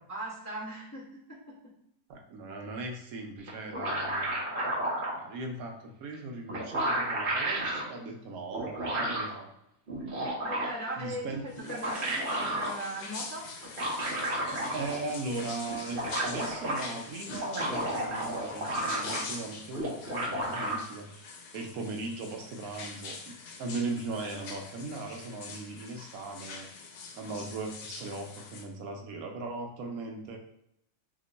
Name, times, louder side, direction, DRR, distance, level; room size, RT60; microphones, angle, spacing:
voice 1, 0.1-1.7 10.4-13.5, right 1 dB, 15° left, -8 dB, 0.6 m, -39 dB
voice 2, 2.1-4.4 5.1-9.5 11.0-11.4 14.7-21.2 21.5-23.3 23.6-26.9 27.2-30.4, right 3 dB, 75° right, 2 dB, 1.0 m, -38 dB
sound 1, 3.5-5.2 6.1-6.2 6.5-7.8 8.5-9.3 9.9-10.9 11.5-12.7 13.6-15.1 15.4-15.5 15.7-16.8 17.3-19.4 19.7-20.8, right 1 dB, 45° right, 0.8 m, -32 dB
sound 2, 11.5-28.6, left 4 dB, 85° left, 1.1 m, -44 dB
3.0 x 2.1 x 3.8 m, 0.76 s
omnidirectional pair, 1.6 m